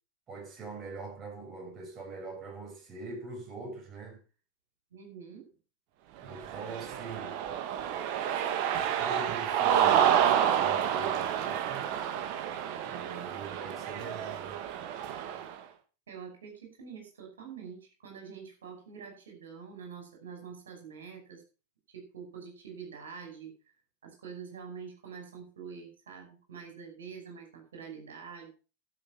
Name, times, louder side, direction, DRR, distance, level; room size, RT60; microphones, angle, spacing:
voice 1, 0.3-4.2 6.2-7.4 8.7-11.9 12.8-14.6, right 3 dB, 25° right, 6.7 m, -43 dB
voice 2, 4.9-5.4 16.1-21.4 21.9-23.5 24.0-28.5, right 6 dB, 65° right, 5.7 m, -46 dB
Cheering, 6.3-15.5, right 9 dB, 45° right, 1.7 m, -29 dB
12.0 x 7.2 x 5.9 m
figure-of-eight pair, 90°, 0 cm